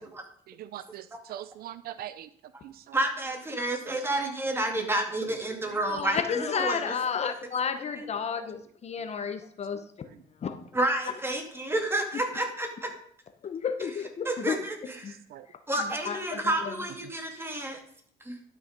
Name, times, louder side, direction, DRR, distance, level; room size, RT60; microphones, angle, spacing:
voice 1, 0.5-2.3 2.6-3.0 3.9-4.4 5.6-5.8 15.1-15.5, right 12 dB, 65° right, 14 dB, 0.5 m, -42 dB
voice 2, 2.9-6.8 8.0-8.1 10.7-12.9 14.2-15.2 15.7-17.8 18.2-18.3, right 1 dB, 15° right, 3 dB, 2.3 m, -30 dB
voice 3, 5.9-10.1 10.4-10.6 13.4-14.6 15.0-15.1 16.1-16.7, left 6 dB, 40° left, 9 dB, 0.8 m, -32 dB
11.5 x 6.3 x 5.2 m, 0.63 s
cardioid pair, 110°, 17 cm